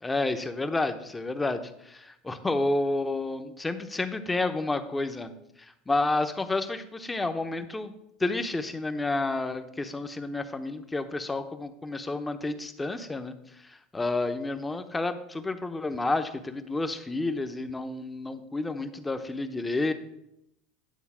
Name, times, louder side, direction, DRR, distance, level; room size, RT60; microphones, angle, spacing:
voice 1, 0.0-5.3 5.6-7.9 8.2-19.9, left 2 dB, 15° left, 8 dB, 0.8 m, -30 dB
10.5 x 4.0 x 7.3 m, 0.81 s
supercardioid pair, 110°, 0 cm